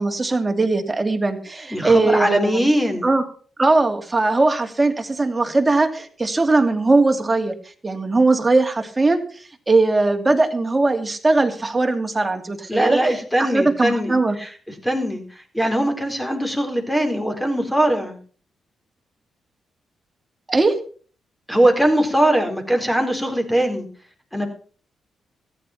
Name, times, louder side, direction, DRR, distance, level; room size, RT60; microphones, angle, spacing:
voice 1, 0.0-2.7 3.0-3.2 3.6-7.5 7.8-9.2 9.7-13.0 13.4-14.4 20.5-20.8, right 3 dB, 25° right, 5 dB, 2.7 m, -19 dB
voice 2, 1.7-3.1 12.7-14.5 14.8-15.2 15.5-18.2 21.5-23.9 24.3-24.5, right 1 dB, 5° left, 5 dB, 4.4 m, -20 dB
14.0 x 10.0 x 5.9 m, 0.42 s
cardioid pair, 65°, 0 cm